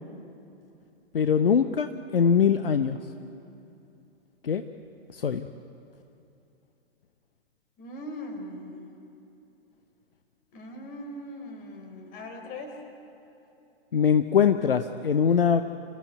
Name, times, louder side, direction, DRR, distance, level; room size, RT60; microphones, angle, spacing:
voice 1, 1.1-3.0 4.4-4.6 5.1-5.4 13.9-15.6, left 7 dB, 65° left, 9 dB, 0.9 m, -22 dB
voice 2, 7.8-8.9 10.5-12.8, left 1 dB, 30° left, 3 dB, 3.9 m, -40 dB
27.0 x 14.5 x 9.4 m, 2.8 s
figure-of-eight pair, 110°, 30 cm